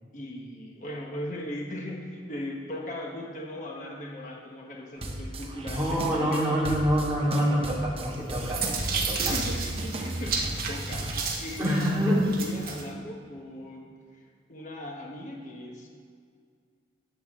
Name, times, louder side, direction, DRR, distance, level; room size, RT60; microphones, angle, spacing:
voice 1, 0.1-7.0 8.8-8.9 9.2-14.2 14.5-15.9, left 1 dB, 45° left, -1 dB, 1.2 m, -38 dB
sound 1, 5.0-11.1, right 1 dB, 30° right, 1.0 m, -35 dB
voice 2, 5.7-9.3 11.6-12.3, equal, 15° right, -6 dB, 2.5 m, -26 dB
sound 2, 8.1-12.9, right 5 dB, 50° right, 1.3 m, -33 dB
19.0 x 7.2 x 3.7 m, 2.2 s
head